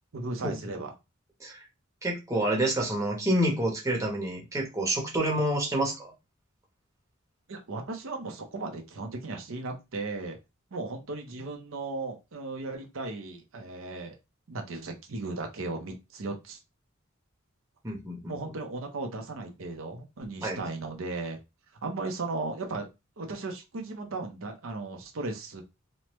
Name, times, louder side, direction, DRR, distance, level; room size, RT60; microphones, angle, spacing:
voice 1, 0.1-0.9 7.5-10.4 10.7-14.2 14.5-16.6 18.3-21.4 21.8-22.9 23.2-25.6, right 3 dB, 75° right, 3 dB, 0.7 m, -36 dB
voice 2, 2.0-6.1 17.8-18.3 20.4-20.6, right 1 dB, 15° right, -2 dB, 0.9 m, -28 dB
3.1 x 2.1 x 3.0 m, 0.25 s
head